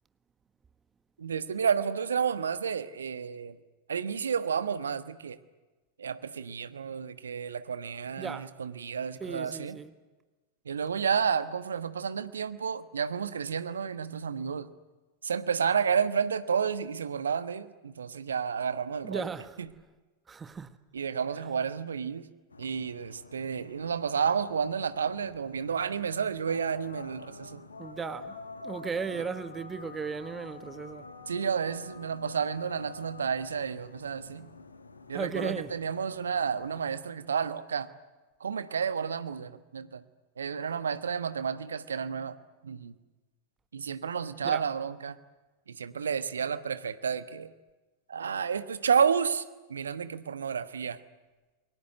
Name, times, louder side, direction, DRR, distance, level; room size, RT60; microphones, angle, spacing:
voice 1, 1.2-3.6 3.9-5.4 6.0-9.8 10.6-14.7 15.2-19.3 20.9-22.3 22.6-27.6 29.2-29.3 31.3-34.5 35.1-37.9 38.4-40.0 40.4-42.4 42.6-42.9 43.7-45.2 45.7-47.5 48.1-51.0, right 6 dB, 70° right, 1.2 m, -31 dB
voice 2, 8.2-8.5 9.2-9.9 19.0-19.6 20.3-20.8 27.8-31.1 35.1-35.8 44.4-44.6, right 5 dB, 15° right, 1.4 m, -36 dB
sound 1, 22.5-37.0, left 3 dB, 75° left, 1.5 m, -48 dB
29.0 x 22.5 x 7.9 m
figure-of-eight pair, 90°, 0 cm